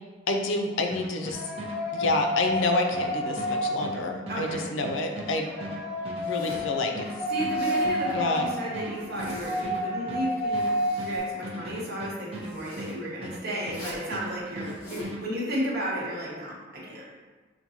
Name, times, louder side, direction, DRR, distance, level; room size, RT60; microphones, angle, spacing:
voice 1, 0.3-1.4 1.9-5.5 6.2-7.1 8.1-8.5, left 2 dB, 80° left, 3 dB, 0.5 m, -28 dB
sound 1, 0.9-13.9 14.1-15.2, right 1 dB, 30° right, 0.7 m, -38 dB
sound 2, 1.3-4.4 5.3-11.2, equal, 5° right, 1.2 m, -30 dB
voice 2, 4.3-4.7 7.3-17.1, equal, 55° right, -5 dB, 1.1 m, -33 dB
Zipper (clothing), 6.2-6.7 7.4-7.9 8.9-9.7 10.3-11.3 12.4-12.9 13.6-14.1 14.6-15.1, equal, 50° left, 1.2 m, -44 dB
6.0 x 2.2 x 2.8 m, 1.3 s
head